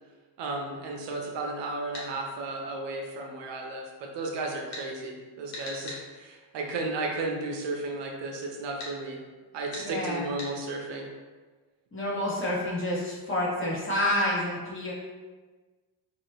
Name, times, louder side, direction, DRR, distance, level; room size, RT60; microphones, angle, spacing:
voice 1, 0.4-9.2 9.5-11.1, right 2 dB, 65° right, 1 dB, 0.6 m, -34 dB
sound 1, 1.9-2.1 4.7-4.9 5.5-6.0 8.8-8.9 9.7-9.9 10.4-10.5, left 2 dB, 90° left, 1.1 m, -39 dB
voice 2, 9.8-10.3 11.9-14.9, left 1 dB, 25° left, -8 dB, 1.1 m, -29 dB
2.8 x 2.5 x 3.2 m, 1.4 s
cardioid pair, 115°, 47 cm